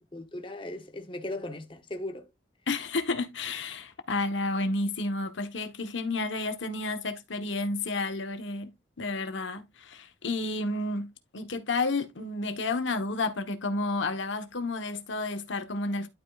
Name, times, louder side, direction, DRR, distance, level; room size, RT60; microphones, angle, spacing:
voice 1, 0.1-2.3, left 1 dB, 25° left, 0.9 m, -37 dB
voice 2, 2.7-8.7 9.0-16.1, left 2 dB, 85° left, 1.2 m, -31 dB
11.5 x 5.2 x 2.4 m
head